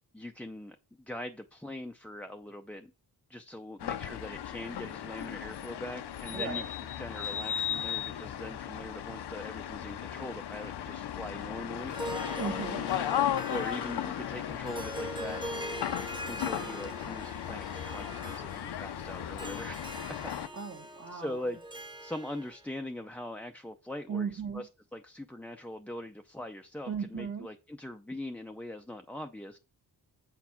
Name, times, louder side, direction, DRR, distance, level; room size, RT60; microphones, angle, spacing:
voice 1, 0.1-2.9 3.3-6.6 7.0-12.0 13.5-15.4 16.3-20.3 21.1-21.6 22.0-29.6, left 1 dB, 5° left, 5 dB, 0.4 m, -42 dB
sound 1, 3.8-20.5, left 10 dB, 90° left, 0.8 m, -36 dB
voice 2, 6.3-6.6 12.4-12.9 20.5-21.4 24.1-24.7 26.9-27.5, right 6 dB, 40° right, 0 dB, 1.2 m, -36 dB
Harp, 11.7-22.7, right 1 dB, 10° right, 1.0 m, -42 dB
8.2 x 4.7 x 5.8 m, 0.29 s
wide cardioid pair, 150°, 39 cm